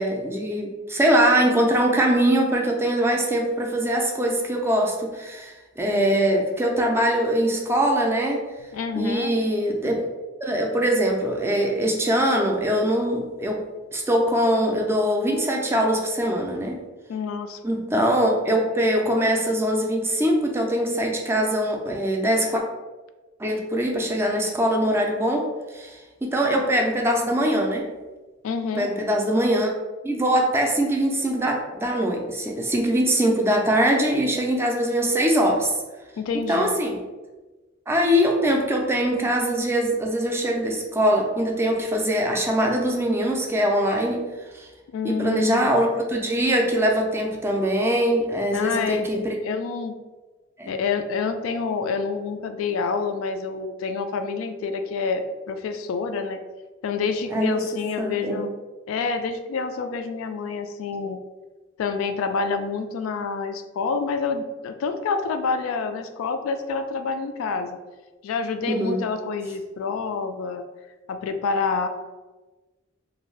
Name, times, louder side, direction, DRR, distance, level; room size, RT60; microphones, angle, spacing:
voice 1, 0.0-8.5 8.9-10.1 10.4-13.6 13.9-16.8 17.6-22.6 23.4-27.9 28.8-29.7 30.0-35.7 36.3-37.0 37.9-44.7 45.0-49.4 50.6-50.7 57.3-58.5 68.7-69.0, equal, 10° right, 0 dB, 0.3 m, -22 dB
voice 2, 5.9-6.3 8.7-9.3 17.1-17.6 28.4-28.9 36.2-36.7 44.9-45.7 48.5-49.9 50.7-56.4 56.8-58.5 58.9-61.2 61.8-67.8 68.2-70.6 71.1-71.9, left 4 dB, 85° left, 8 dB, 0.3 m, -28 dB
2.6 x 2.3 x 3.1 m, 1.2 s
head